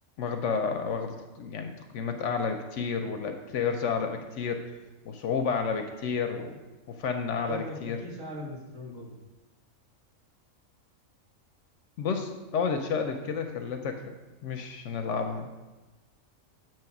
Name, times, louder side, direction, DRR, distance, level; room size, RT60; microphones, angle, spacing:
voice 1, 0.2-4.6 5.1-6.6 6.9-8.0 12.0-14.1 14.4-15.5, left 5 dB, 70° left, 6 dB, 0.9 m, -31 dB
voice 2, 7.5-9.1, equal, 70° right, -3 dB, 1.9 m, -39 dB
7.9 x 3.1 x 5.9 m, 1.2 s
omnidirectional pair, 1.4 m